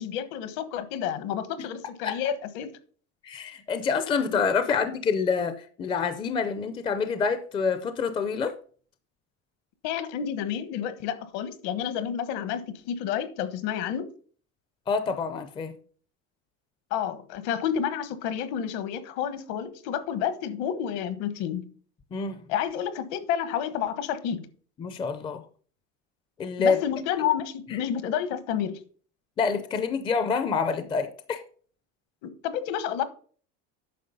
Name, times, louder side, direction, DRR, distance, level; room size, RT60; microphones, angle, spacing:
voice 1, 0.0-2.7 4.1-4.4 9.8-14.1 16.9-21.7 22.5-24.5 26.6-28.8 32.2-33.0, left 9 dB, 60° left, 1.3 m, -30 dB
voice 2, 3.2-8.5 14.9-15.7 22.1-22.4 24.8-25.4 26.4-26.8 27.7-27.8 29.4-31.4, left 5 dB, 15° left, 0.5 m, -27 dB
9.4 x 6.2 x 5.3 m
cardioid pair, 180°, 31 cm